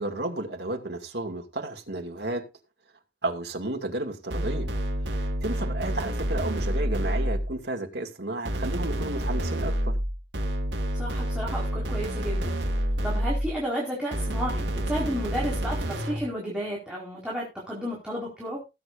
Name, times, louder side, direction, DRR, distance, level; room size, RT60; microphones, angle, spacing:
voice 1, 0.0-2.5 3.2-4.7 5.1-10.0, right 2 dB, 65° right, 2.4 m, -32 dB
sound 1, 4.3-7.6 8.5-13.6 14.1-16.3, right 1 dB, 85° right, 2.3 m, -28 dB
voice 2, 10.9-12.6 13.0-18.6, equal, 5° right, 4.6 m, -32 dB
19.0 x 8.9 x 2.6 m
head